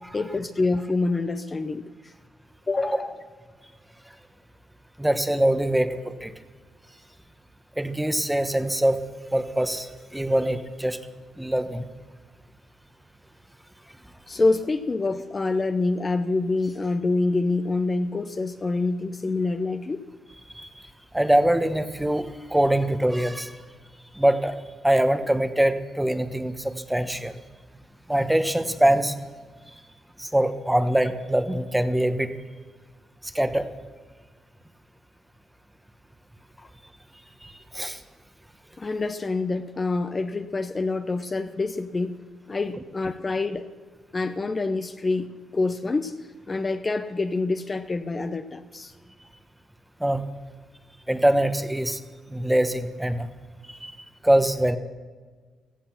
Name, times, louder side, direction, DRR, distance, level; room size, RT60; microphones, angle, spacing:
voice 1, 0.1-2.1 2.7-3.1 14.3-20.1 36.6-36.7 38.8-42.2 42.5-43.7 44.1-45.3 45.5-46.2 46.5-48.9, left 3 dB, 30° left, 8 dB, 0.8 m, -26 dB
voice 2, 5.0-6.3 7.8-9.0 9.3-11.0 11.4-11.8 20.5-20.7 21.1-23.6 24.1-24.6 24.8-27.3 28.1-29.2 30.2-32.3 33.2-33.7 37.4-38.0 50.0-50.2 51.1-52.0 52.3-53.3 53.7-53.9 54.2-54.8, right 1 dB, 5° right, 9 dB, 1.1 m, -23 dB
16.5 x 14.0 x 5.9 m, 1.5 s
cardioid pair, 90°, 0 cm